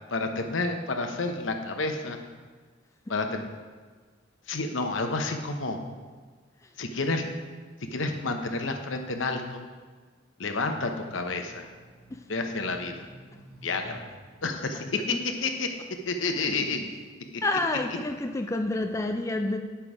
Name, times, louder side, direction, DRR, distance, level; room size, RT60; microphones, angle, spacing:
voice 1, 0.1-2.2 3.1-3.4 4.5-5.8 6.8-7.2 7.9-9.6 10.4-11.7 12.3-13.0 13.6-14.0 14.4-14.8 15.4-15.7 16.0-16.9, left 3 dB, 80° left, 5 dB, 0.9 m, -30 dB
sound 1, 11.2-16.7 17.2-19.1, right 1 dB, 15° right, 2.6 m, -53 dB
voice 2, 17.4-19.6, left 2 dB, 15° left, 4 dB, 0.4 m, -28 dB
9.0 x 5.8 x 4.9 m, 1.5 s
head